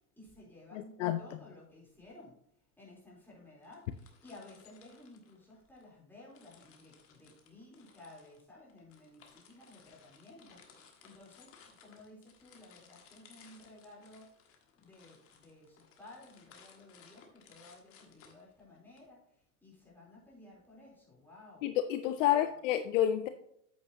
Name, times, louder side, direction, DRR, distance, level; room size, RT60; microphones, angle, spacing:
voice 1, 0.2-2.3 2.8-14.3 14.8-19.2 19.6-21.7 22.2-22.6, left 2 dB, 5° left, -5 dB, 3.6 m, -55 dB
voice 2, 0.7-1.2 21.6-23.3, left 12 dB, 55° left, 10 dB, 0.6 m, -29 dB
sound 1, 3.6-5.9 6.3-19.0, left 6 dB, 30° left, 1.5 m, -61 dB
8.4 x 8.0 x 2.9 m, 0.73 s
hypercardioid pair, 125°, 45 cm